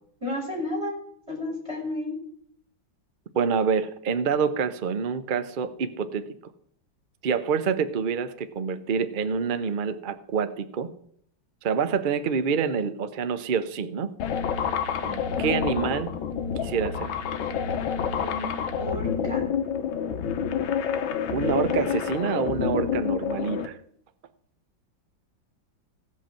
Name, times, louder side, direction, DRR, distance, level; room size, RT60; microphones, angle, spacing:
voice 1, 0.2-0.9 1.3-2.2 15.0-15.4 18.2-19.5, left 1 dB, 15° right, -2 dB, 5.4 m, -33 dB
voice 2, 3.3-6.3 7.2-10.9 11.6-14.1 15.4-16.1 16.6-17.2 21.3-23.8, right 6 dB, 90° right, 10 dB, 0.4 m, -27 dB
sound 1, 14.2-23.7, left 7 dB, 90° left, 1.7 m, -28 dB
16.5 x 5.6 x 7.5 m, 0.66 s
omnidirectional pair, 2.1 m